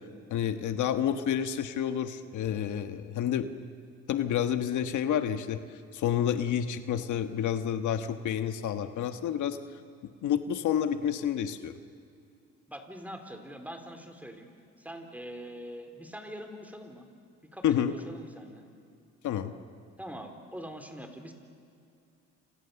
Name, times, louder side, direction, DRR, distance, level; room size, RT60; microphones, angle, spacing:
voice 1, 0.3-3.5 4.1-5.6 5.9-9.6 10.2-11.8 17.6-17.9 19.2-19.5, left 9 dB, 75° left, 9 dB, 1.4 m, -29 dB
voice 2, 12.7-14.5 14.8-17.1 17.5-18.7 20.0-21.3, equal, 5° right, 5 dB, 3.8 m, -43 dB
28.5 x 27.5 x 7.0 m, 2.5 s
cardioid pair, 90°, 30 cm